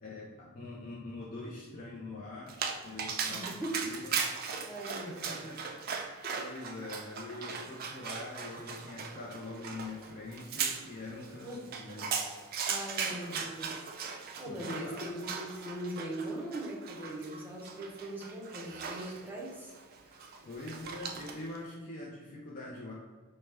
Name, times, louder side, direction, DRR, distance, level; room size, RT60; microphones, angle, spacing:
voice 1, 0.0-2.6 2.8-3.5 3.8-4.6 5.0-12.5 13.3-13.5 13.9-15.1 18.2-18.3 20.1-20.2 20.5-22.9, left 2 dB, 40° left, -4 dB, 0.4 m, -44 dB
Dog, 2.5-21.6, right 6 dB, 40° right, 0.3 m, -39 dB
voice 2, 3.3-3.9 4.7-5.5 6.1-6.2 11.4-11.7 12.7-13.7 14.4-19.8 20.0-20.2, right 1 dB, 10° right, -4 dB, 0.7 m, -40 dB
4.6 x 2.1 x 3.3 m, 1.4 s
head